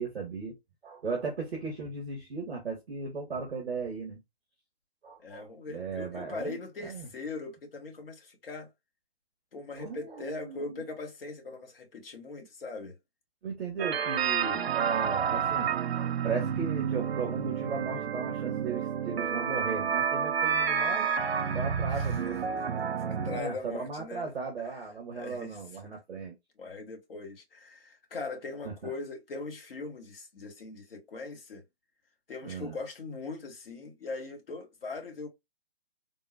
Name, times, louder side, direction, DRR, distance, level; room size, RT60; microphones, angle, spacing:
voice 1, 0.0-4.2 5.0-7.1 9.7-10.8 13.4-21.1 21.5-22.4 23.4-26.3 28.8-28.9 32.4-32.8, right 5 dB, ahead, 0.3 m, -37 dB
voice 2, 5.2-8.7 9.5-13.0 21.9-22.7 23.0-24.3 25.1-25.6 26.6-31.6 32.3-35.3, left 3 dB, 65° left, 1.2 m, -40 dB
sound 1, 13.8-23.4, right 7 dB, 75° right, 0.5 m, -30 dB
3.6 x 2.0 x 2.7 m
figure-of-eight pair, 140°, 31 cm